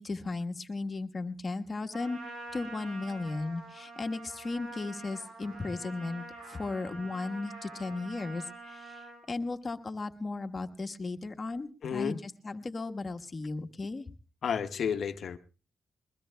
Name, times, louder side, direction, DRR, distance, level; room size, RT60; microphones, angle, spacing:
voice 1, 0.0-2.2 2.5-14.0, left 3 dB, 40° left, 1.3 m, -36 dB
Trumpet, 1.9-9.2, right 2 dB, 80° right, 7.0 m, -46 dB
voice 2, 11.8-12.2 14.4-15.4, left 7 dB, 70° left, 1.0 m, -31 dB
22.0 x 20.5 x 2.3 m
cardioid pair, 70°, 0 cm